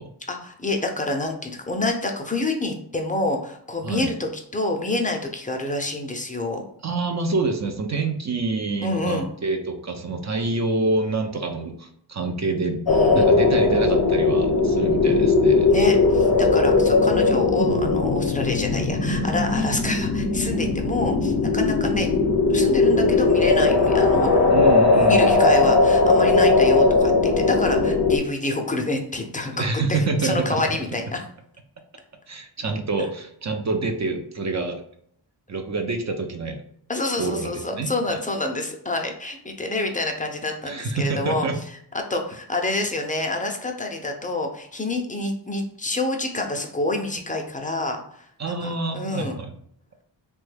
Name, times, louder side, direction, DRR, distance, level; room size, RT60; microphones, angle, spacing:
voice 1, 0.3-6.6 8.8-9.3 12.9-13.3 15.7-22.1 22.5-24.5 24.9-31.2 36.9-41.5 41.9-48.0 48.6-49.4, left 2 dB, 20° left, 3 dB, 0.5 m, -27 dB
voice 2, 6.8-12.8 13.1-15.7 24.5-25.6 29.5-30.6 32.3-34.8 35.5-36.6 37.2-38.2 40.6-41.6 48.4-49.5, right 3 dB, 40° right, 4 dB, 0.5 m, -27 dB
sound 1, 12.9-28.2, left 3 dB, 65° left, 0.6 m, -19 dB
3.0 x 2.2 x 3.2 m, 0.66 s
cardioid pair, 75°, 44 cm